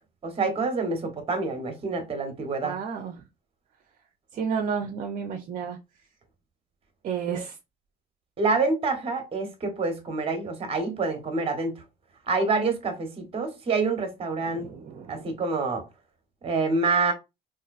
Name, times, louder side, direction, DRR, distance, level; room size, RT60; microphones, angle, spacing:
voice 1, 0.2-2.8 7.3-7.4 8.4-11.8 12.3-14.7 15.1-15.8 16.4-17.1, right 3 dB, 35° right, 1.1 m, -27 dB
voice 2, 2.6-3.1 4.3-5.8 7.0-7.5 14.5-15.2, right 6 dB, 50° right, 0.6 m, -31 dB
3.6 x 2.6 x 2.4 m
cardioid pair, 110°, 17 cm